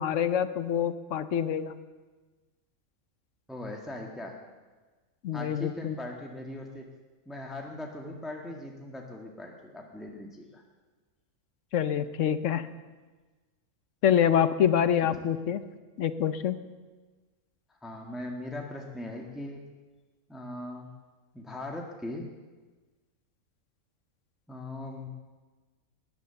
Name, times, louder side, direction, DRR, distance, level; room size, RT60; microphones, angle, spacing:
voice 1, 0.0-1.7 5.2-5.9 11.7-12.7 14.0-15.6 16.0-16.6, left 9 dB, 65° left, 12 dB, 1.1 m, -26 dB
voice 2, 3.5-4.4 5.3-6.9 7.2-10.6 15.0-15.1 17.7-19.6 20.3-20.9 21.3-22.3 24.5-25.1, left 1 dB, ahead, 0 dB, 1.6 m, -39 dB
19.0 x 10.5 x 6.9 m, 1.3 s
omnidirectional pair, 1.5 m